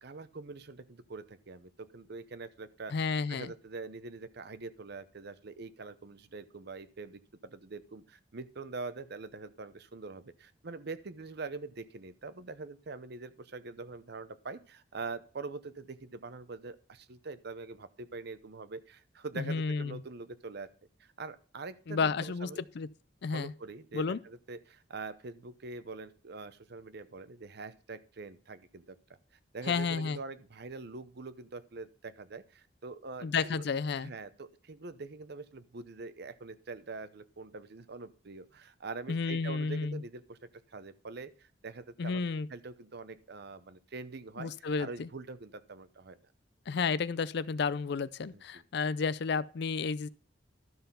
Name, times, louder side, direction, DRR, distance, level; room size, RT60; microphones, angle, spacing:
voice 1, 0.0-20.7 21.0-22.6 23.3-29.0 29.5-33.6 34.0-40.4 40.7-42.2 42.5-46.2 48.3-48.6, right 3 dB, 60° right, 0.8 m, -44 dB
voice 2, 2.9-3.5 19.4-20.0 21.9-22.5 22.7-22.9 23.2-23.5 23.9-24.2 29.7-30.2 33.2-34.1 39.1-40.0 42.0-42.5 44.4-45.1 46.7-50.1, left 5 dB, 60° left, 0.4 m, -31 dB
12.5 x 5.6 x 5.7 m
head